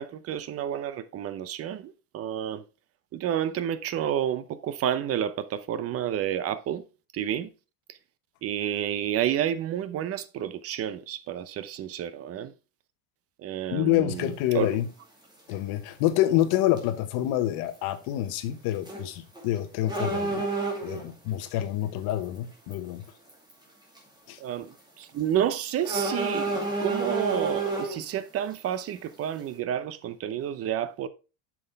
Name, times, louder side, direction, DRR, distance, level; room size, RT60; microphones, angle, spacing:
voice 1, 0.0-2.6 3.1-6.8 7.1-7.5 8.4-12.5 13.4-14.7 24.4-31.1, right 10 dB, 35° right, 0.7 m, -30 dB
voice 2, 13.7-14.9 15.5-20.4 20.8-23.0 24.3-24.4, left 13 dB, 65° left, 1.2 m, -27 dB
sound 1, 14.2-14.3 15.9-16.1 16.4-16.5 16.8-16.9 18.8-19.1 19.4-19.5 19.9-21.1 22.1-22.2 22.7-22.8 23.3-23.5 24.0-24.1 25.8-28.0, right 3 dB, 10° right, 2.4 m, -29 dB
7.6 x 6.2 x 3.4 m
cardioid pair, 145°, 40 cm